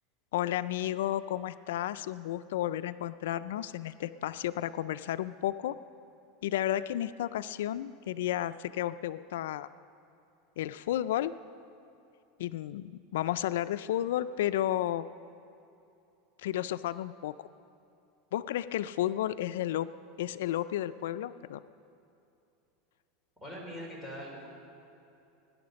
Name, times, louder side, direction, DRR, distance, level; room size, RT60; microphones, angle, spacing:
voice 1, 0.3-5.8 6.4-9.7 10.6-11.3 12.4-15.1 16.4-17.3 18.3-19.9 20.2-21.6, left 12 dB, 85° left, 14 dB, 0.3 m, -32 dB
voice 2, 23.4-24.5, equal, 5° right, -3 dB, 3.5 m, -42 dB
18.5 x 10.5 x 5.2 m, 2.7 s
supercardioid pair, 150°, 0 cm